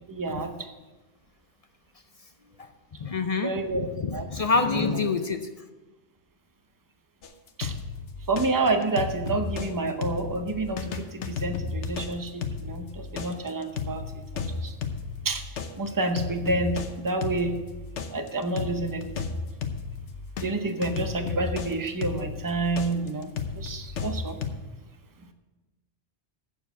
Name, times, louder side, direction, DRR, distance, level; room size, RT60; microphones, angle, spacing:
voice 1, 0.1-0.7 3.4-4.3 4.8-5.0 7.6-7.7 8.3-14.7 15.2-15.4 15.8-17.5 18.1-19.1 20.4-24.4, right 2 dB, 20° right, 7 dB, 0.7 m, -29 dB
voice 2, 3.0-5.5, left 4 dB, 45° left, 8 dB, 0.5 m, -26 dB
sound 1, 7.2-9.7 10.0-20.5 20.8-24.5, left 5 dB, 80° left, 1.2 m, -33 dB
7.9 x 7.0 x 8.0 m, 1.2 s
omnidirectional pair, 1.2 m